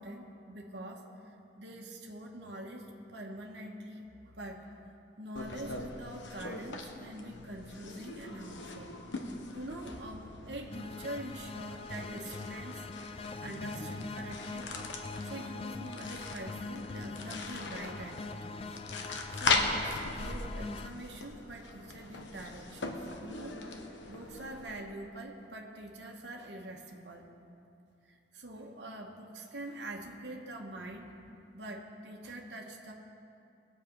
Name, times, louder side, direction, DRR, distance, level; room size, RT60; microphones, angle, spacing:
voice 1, 0.0-4.8 5.2-9.0 9.5-12.9 13.1-14.7 15.2-18.8 19.3-23.6 24.1-27.3 28.1-31.2 31.5-32.9, right 1 dB, 70° right, 0 dB, 1.3 m, -45 dB
sound 1, 5.3-24.8, left 3 dB, 85° left, 1.1 m, -39 dB
sound 2, 10.7-20.9, left 3 dB, 30° left, 0.4 m, -43 dB
19.5 x 7.6 x 5.3 m, 2.7 s
head